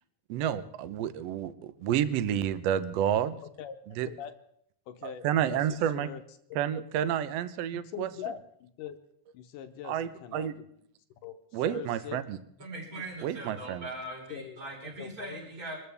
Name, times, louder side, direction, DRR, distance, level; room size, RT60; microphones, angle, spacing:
voice 1, 0.3-3.4 4.0-4.1 5.2-6.1 6.5-8.1 9.8-10.5 11.5-12.4 13.2-13.9, right 10 dB, 80° right, 13 dB, 1.4 m, -30 dB
voice 2, 4.9-6.2 6.5-6.6 7.7-9.0 9.3-10.7 11.2-12.2 12.9-13.0 14.3-14.6 14.8-15.5, left 9 dB, 75° left, 8 dB, 2.1 m, -43 dB
voice 3, 12.6-15.8, right 1 dB, 25° right, -1 dB, 4.9 m, -40 dB
25.5 x 14.0 x 3.5 m, 0.70 s
omnidirectional pair, 4.0 m